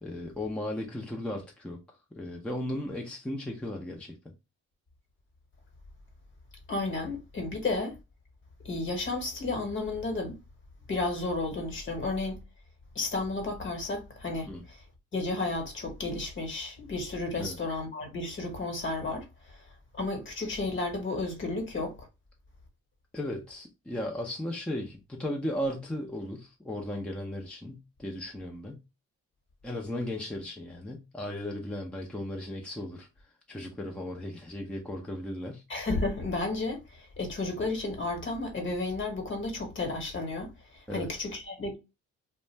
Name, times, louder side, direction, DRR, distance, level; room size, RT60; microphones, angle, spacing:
voice 1, 0.0-1.8 2.1-4.1 14.5-14.6 17.4-17.6 23.1-28.8 29.6-35.6 40.9-41.1, left 1 dB, 5° left, 0.5 m, -36 dB
voice 2, 6.7-7.9 8.6-10.4 10.9-12.4 12.9-14.8 15.1-19.6 19.9-22.1 35.7-41.8, left 2 dB, 40° left, 1.2 m, -32 dB
2.4 x 2.1 x 3.2 m
cardioid pair, 90°, 30 cm